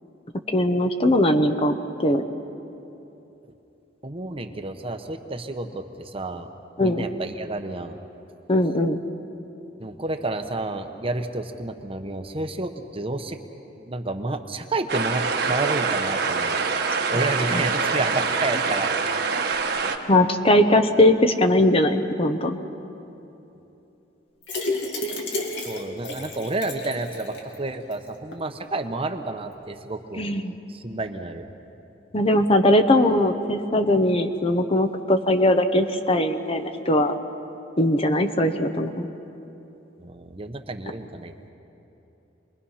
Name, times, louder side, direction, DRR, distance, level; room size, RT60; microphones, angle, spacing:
voice 1, 0.5-2.2 6.8-7.0 8.5-9.0 17.5-17.6 20.1-22.6 30.2-30.5 32.1-37.1 37.8-39.1, left 1 dB, 30° left, 7 dB, 1.0 m, -20 dB
voice 2, 4.0-6.5 6.8-8.0 9.8-13.4 13.8-16.6 17.1-18.9 25.6-30.2 30.7-31.4 40.0-41.5, right 2 dB, 30° right, 6 dB, 1.0 m, -30 dB
sound 1, 14.9-20.0, right 4 dB, 60° right, 1.4 m, -25 dB
sound 2, 24.4-27.5 27.9-28.0 28.3-28.4, left 2 dB, 75° left, 2.5 m, -31 dB
27.5 x 21.5 x 5.7 m, 3.0 s
head